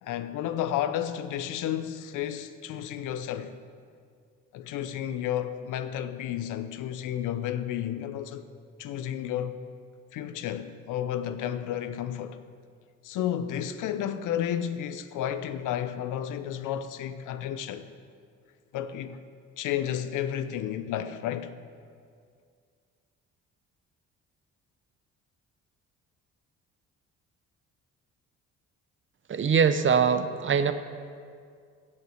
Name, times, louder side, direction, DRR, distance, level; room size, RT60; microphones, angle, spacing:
voice 1, 0.0-3.5 4.5-8.4 8.8-9.6 10.1-12.4 13.0-17.8 18.7-19.2 19.6-21.5, left 10 dB, 85° left, 0.7 m, -32 dB
voice 2, 29.3-30.7, right 6 dB, 40° right, 0.8 m, -22 dB
16.0 x 5.4 x 6.4 m
cardioid pair, 90°, 30 cm